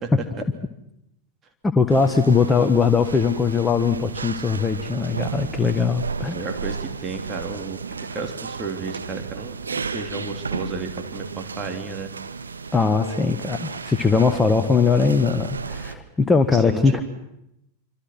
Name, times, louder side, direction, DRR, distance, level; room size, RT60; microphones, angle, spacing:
voice 1, 1.6-6.4 12.7-17.0, left 5 dB, 10° left, 8 dB, 1.4 m, -20 dB
sound 1, 1.9-15.9, right 5 dB, 75° right, 1.4 m, -33 dB
voice 2, 6.3-7.8 8.1-12.1 16.5-17.0, right 4 dB, 25° right, 4 dB, 3.5 m, -33 dB
27.0 x 25.5 x 6.1 m, 0.82 s
figure-of-eight pair, 90°, 0 cm